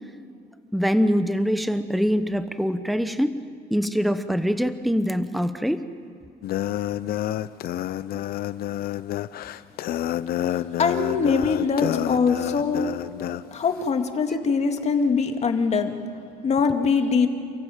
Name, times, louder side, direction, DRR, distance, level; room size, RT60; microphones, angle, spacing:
voice 1, 0.7-3.4 3.7-5.9, equal, ahead, 10 dB, 0.9 m, -23 dB
sound 1, 6.4-13.4, left 12 dB, 65° left, 0.7 m, -28 dB
voice 2, 10.8-12.9 13.5-15.9 16.4-17.3, left 5 dB, 40° left, 6 dB, 2.2 m, -22 dB
28.5 x 15.0 x 9.1 m, 2.6 s
cardioid pair, 110°, 17 cm